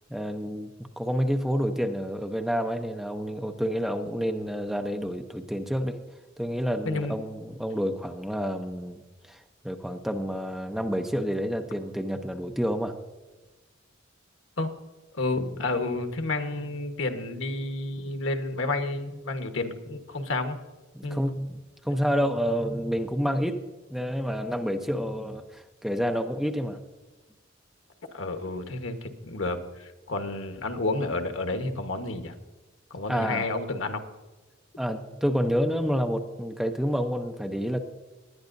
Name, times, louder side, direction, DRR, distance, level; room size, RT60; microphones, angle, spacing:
voice 1, 0.1-0.7 1.0-6.0 6.4-12.9 20.9-23.6 23.9-26.8 33.1-33.5 34.8-37.8, equal, ahead, 5 dB, 0.7 m, -29 dB
voice 2, 6.8-7.2 14.6-14.7 15.1-20.6 21.0-21.2 28.1-32.3 32.9-34.0, left 2 dB, 85° left, 7 dB, 1.2 m, -30 dB
19.0 x 10.5 x 2.6 m, 1.2 s
head